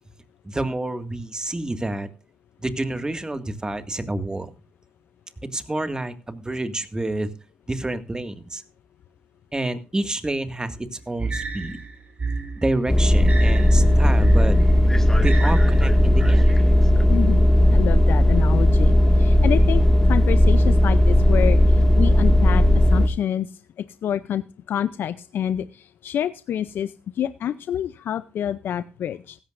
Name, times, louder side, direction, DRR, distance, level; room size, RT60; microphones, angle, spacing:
voice 1, 0.4-2.1 2.6-4.5 5.5-7.3 7.7-8.6 9.5-11.8 12.6-14.6 15.2-16.5, right 2 dB, 20° right, 9 dB, 2.0 m, -28 dB
sound 1, 11.2-16.6, right 4 dB, 40° right, 4.7 m, -31 dB
sound 2, 12.9-23.1, left 1 dB, 10° left, 1.9 m, -16 dB
voice 2, 17.1-23.5 24.0-29.4, left 10 dB, 75° left, 14 dB, 0.5 m, -28 dB
16.0 x 14.0 x 2.6 m, 0.33 s
supercardioid pair, 55°, 4 cm